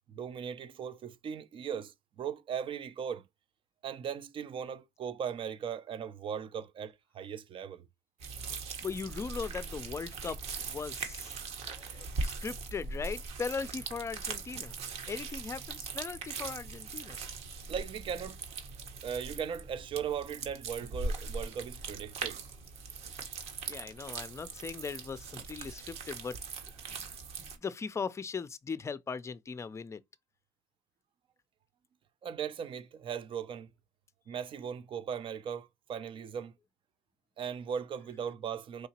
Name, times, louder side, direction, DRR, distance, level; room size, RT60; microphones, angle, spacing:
voice 1, 0.1-3.2 3.8-7.9 17.7-18.4 19.0-22.4 32.2-33.7 34.3-36.5 37.4-38.9, right 7 dB, 45° right, 0.6 m, -38 dB
sound 1, 8.2-27.6, right 4 dB, 65° right, 1.3 m, -40 dB
voice 2, 8.8-10.4 10.7-11.4 11.7-14.8 15.1-17.2 23.7-26.4 26.9-27.0 27.4-30.0, left 5 dB, 25° left, 0.5 m, -39 dB
4.7 x 2.8 x 2.8 m
supercardioid pair, 80°, 12 cm